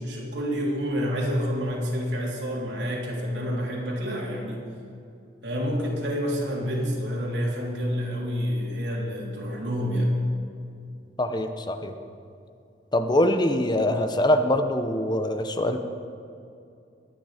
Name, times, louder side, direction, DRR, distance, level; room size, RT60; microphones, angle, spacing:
voice 1, 0.0-4.7 5.4-10.2, equal, 80° right, -2 dB, 3.3 m, -28 dB
voice 2, 11.2-11.9 12.9-15.8, left 1 dB, 25° left, 7 dB, 0.8 m, -23 dB
23.5 x 9.4 x 5.1 m, 2.5 s
head